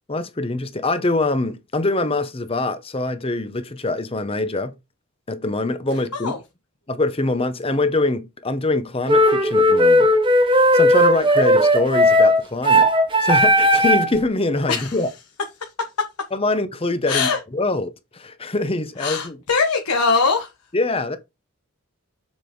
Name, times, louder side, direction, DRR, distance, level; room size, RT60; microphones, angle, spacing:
voice 1, 0.1-4.7 5.3-6.4 6.9-10.1 10.4-12.9 13.2-15.1 16.3-19.4 20.7-21.2, left 2 dB, 25° left, 0.8 m, -24 dB
sound 1, 9.1-14.2, equal, 20° right, 0.9 m, -16 dB
voice 2, 17.1-17.4 19.0-20.5, left 4 dB, 90° left, 1.2 m, -21 dB
7.2 x 5.1 x 3.8 m
head